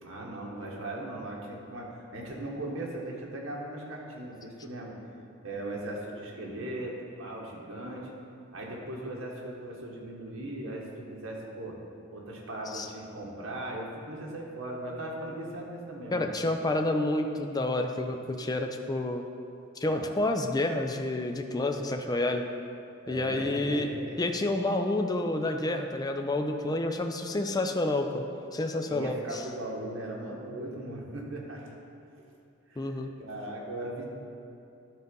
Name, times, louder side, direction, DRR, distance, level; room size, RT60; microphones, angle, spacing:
voice 1, 0.0-4.9 5.4-8.1 8.5-11.8 12.1-16.3 19.8-20.1 23.0-24.1 28.9-31.7 32.7-34.0, right 1 dB, 80° right, -3 dB, 1.5 m, -38 dB
voice 2, 16.1-19.2 19.8-22.5 23.1-23.9 24.2-28.2 28.5-29.4 32.8-33.1, left 2 dB, 20° left, 5 dB, 0.4 m, -29 dB
12.0 x 3.9 x 5.3 m, 2.6 s
head